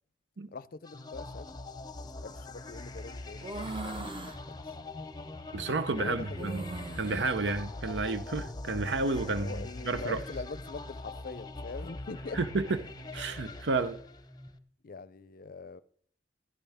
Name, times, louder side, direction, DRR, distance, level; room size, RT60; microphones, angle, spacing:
voice 1, 0.5-1.6 2.2-4.2 4.5-4.7 6.0-6.5 9.3-12.4 14.8-15.8, left 3 dB, 55° left, 0.5 m, -42 dB
sound 1, 0.8-14.5, left 2 dB, 25° left, 0.8 m, -43 dB
sound 2, 3.4-4.4 6.3-7.3 8.8-9.5, right 2 dB, 30° right, 1.2 m, -40 dB
sound 3, 4.3-14.5, equal, 15° right, 4.7 m, -51 dB
voice 2, 5.5-9.6 9.8-10.2 12.3-12.8 13.1-14.0, right 3 dB, 85° right, 0.8 m, -31 dB
15.5 x 13.0 x 3.5 m
head